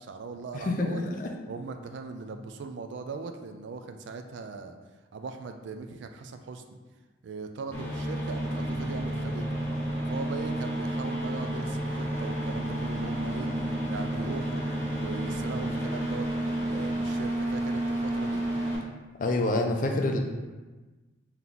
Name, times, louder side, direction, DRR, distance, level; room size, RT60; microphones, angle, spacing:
voice 1, 0.0-1.0 1.5-4.7 5.1-6.8 7.2-9.5 10.1-13.5 13.9-14.6 15.0-18.4, right 4 dB, 65° right, 6 dB, 0.3 m, -39 dB
voice 2, 0.5-1.3 19.2-20.2, left 2 dB, 40° left, 2 dB, 0.4 m, -27 dB
sound 1, 7.7-18.8, right 1 dB, 10° left, 0.7 m, -30 dB
3.5 x 2.9 x 3.8 m, 1.2 s
head